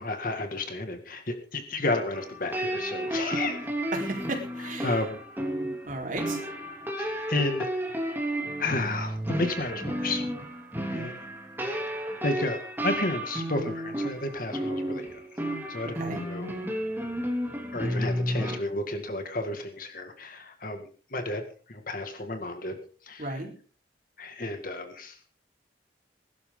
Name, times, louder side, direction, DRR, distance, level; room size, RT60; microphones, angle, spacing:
voice 1, 0.0-3.6 4.6-5.2 7.0-7.7 8.6-10.2 10.9-11.1 11.6-12.6 12.8-15.2 15.7-16.6 17.7-21.4 21.7-22.7 23.0-23.4 24.2-25.2, left 2 dB, 50° left, 6 dB, 2.1 m, -32 dB
sound 1, 2.1-18.6, right 1 dB, 10° right, 2.9 m, -32 dB
voice 2, 3.9-5.0 5.9-6.4 15.9-16.2 23.2-23.5, right 2 dB, 45° right, 1 dB, 4.3 m, -34 dB
21.5 x 12.0 x 3.9 m, 0.40 s
head